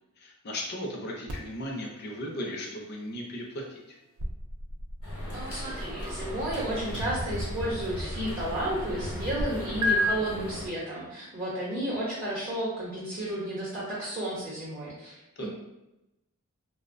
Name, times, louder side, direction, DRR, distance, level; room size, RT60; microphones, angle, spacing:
voice 1, 0.2-4.0 15.4-15.5, equal, 45° left, 0 dB, 0.5 m, -36 dB
sound 1, 1.3-9.4 9.8-10.0, left 2 dB, 80° right, 0.4 m, -37 dB
sound 2, 5.0-10.7, equal, 70° left, 0.8 m, -38 dB
voice 2, 5.3-15.5, right 1 dB, 40° right, -7 dB, 0.6 m, -32 dB
2.8 x 2.0 x 2.5 m, 0.93 s
head